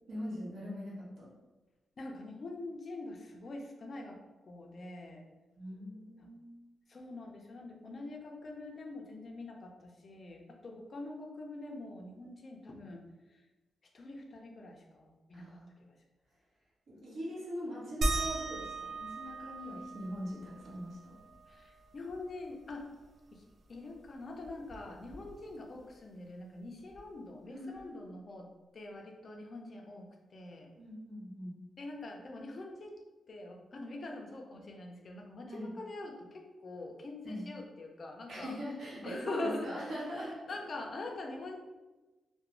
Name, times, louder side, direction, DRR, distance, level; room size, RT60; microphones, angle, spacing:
voice 1, 0.1-1.3 5.5-6.5 15.3-15.7 16.9-21.2 27.5-27.9 30.8-31.6 35.5-35.7 37.2-37.4 38.3-40.4, equal, 65° right, -7 dB, 1.0 m, -41 dB
voice 2, 2.0-4.2 4.4-5.2 6.2-6.3 6.9-13.0 13.3-13.4 13.9-15.9 21.5-22.9 23.3-23.4 23.7-28.5 28.7-30.7 31.8-33.0 33.3-38.6 39.0-39.7 40.1-41.6, left 2 dB, 40° left, 2 dB, 0.4 m, -44 dB
sound 1, 18.0-23.1 23.5-23.6 23.9-25.7 26.9-27.0 27.8-27.9, right 2 dB, 50° right, 0.3 m, -39 dB
2.4 x 2.1 x 2.9 m, 1.1 s
wide cardioid pair, 155°, 0 cm